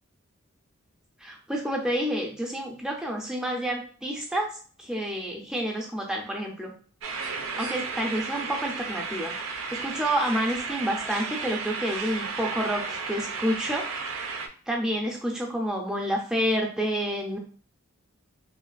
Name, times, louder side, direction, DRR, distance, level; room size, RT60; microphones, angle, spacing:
voice 1, 1.2-4.5 4.8-6.7 7.6-9.3 9.7-13.8 14.7-17.4, equal, 5° right, 0 dB, 0.4 m, -29 dB
sound 1, 7.0-14.5, right 4 dB, 75° right, 0.4 m, -33 dB
3.1 x 2.4 x 2.3 m, 0.43 s
head